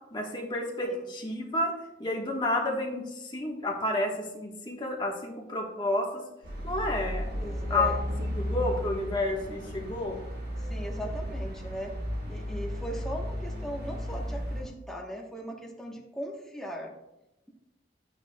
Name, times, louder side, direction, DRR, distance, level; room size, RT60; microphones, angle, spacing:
voice 1, 0.1-1.7 2.0-6.2 6.6-7.3 7.7-7.9 8.2-10.2, left 2 dB, 25° left, -1 dB, 1.3 m, -30 dB
sound 1, 6.4-14.6, equal, 60° right, 3.4 m, -34 dB
voice 2, 7.4-8.0 10.6-11.9 12.3-16.9, right 1 dB, ahead, -1 dB, 1.1 m, -38 dB
11.5 x 8.9 x 2.3 m, 0.95 s
head